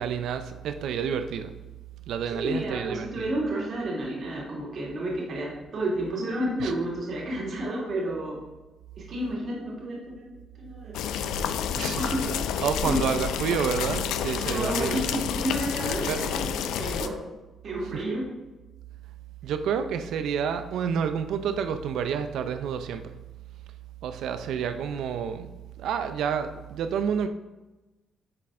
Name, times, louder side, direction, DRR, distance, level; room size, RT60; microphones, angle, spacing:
voice 1, 0.0-1.5 2.1-3.3 6.6-6.7 11.8-12.0 12.6-15.1 16.1-16.2 19.4-23.1 24.0-27.3, right 7 dB, 80° right, 9 dB, 0.4 m, -29 dB
voice 2, 2.3-8.4 9.1-11.0 12.0-12.4 12.8-13.0 14.4-16.5 16.8-17.2 17.6-18.2, right 1 dB, 55° right, -4 dB, 2.8 m, -31 dB
sound 1, 10.9-17.1, left 8 dB, 90° left, 0.4 m, -29 dB
11.0 x 4.2 x 3.7 m, 1.1 s
cardioid pair, 90°, 0 cm